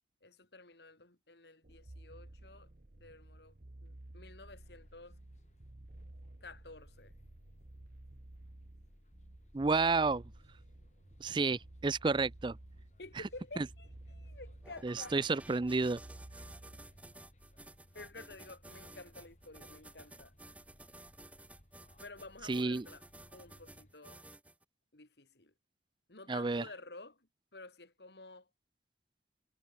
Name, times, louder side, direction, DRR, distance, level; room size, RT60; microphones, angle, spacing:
voice 1, 0.2-2.7 3.0-3.5 3.8-5.2 6.4-7.1 13.0-15.2 17.9-20.3 22.0-23.0 23.3-24.2 24.9-25.5 26.1-27.2 27.5-28.4, left 2 dB, 70° left, 3.0 m, -51 dB
sound 1, 1.6-17.1, right 1 dB, 55° right, 1.2 m, -54 dB
sound 2, 4.4-23.9, equal, 40° left, 7.8 m, -63 dB
voice 2, 9.5-10.2 11.2-12.6 13.6-13.7 14.8-16.0 22.4-22.9 26.3-26.7, right 3 dB, 25° right, 0.4 m, -31 dB
sound 3, 14.6-24.6, right 1 dB, 10° right, 6.7 m, -54 dB
head